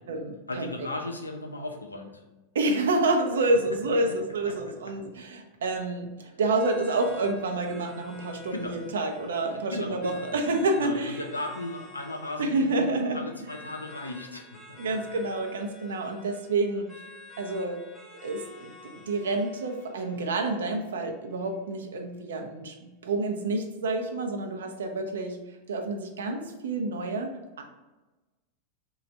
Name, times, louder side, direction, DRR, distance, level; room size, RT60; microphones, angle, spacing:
voice 1, 0.5-2.2 4.1-4.2 4.4-4.9 8.4-8.8 9.4-10.4 10.7-15.0, left 2 dB, 80° left, 3 dB, 0.5 m, -37 dB
voice 2, 2.5-11.2 12.4-13.2 14.8-16.9 17.4-17.8 18.2-25.4 25.7-27.3 27.6-27.7, right 2 dB, 65° right, 3 dB, 0.5 m, -28 dB
sound 1, 6.6-21.5, left 2 dB, 10° left, 0.7 m, -50 dB
3.2 x 2.3 x 4.0 m, 1.1 s
figure-of-eight pair, 90°, 0 cm